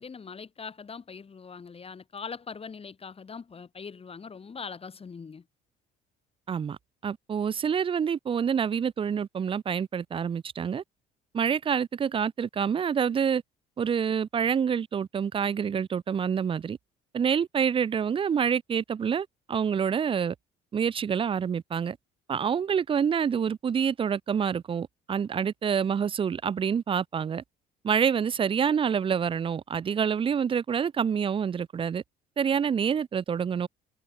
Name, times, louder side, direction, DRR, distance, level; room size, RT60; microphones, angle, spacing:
voice 1, 0.0-5.4, left 5 dB, 30° left, 1.3 m, -41 dB
voice 2, 6.5-6.8 7.0-10.8 11.3-13.4 13.8-16.8 17.1-20.3 20.7-22.0 22.3-27.4 27.8-32.0 32.4-33.7, right 7 dB, 25° right, 0.4 m, -27 dB
supercardioid pair, 80°, 20 cm